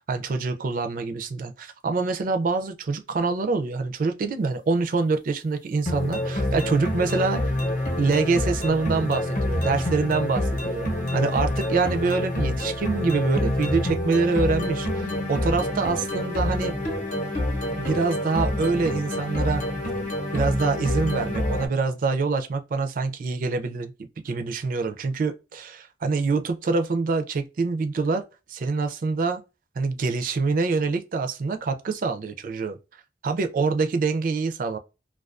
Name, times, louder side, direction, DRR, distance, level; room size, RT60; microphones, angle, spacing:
voice 1, 0.1-7.4 8.0-16.7 17.8-19.6 20.3-23.9 24.2-28.2 28.5-29.4 29.8-32.8 33.2-34.8, right 4 dB, 50° right, 0.4 m, -25 dB
sound 1, 5.8-21.7, left 1 dB, 45° left, 0.7 m, -27 dB
2.3 x 2.2 x 2.4 m
head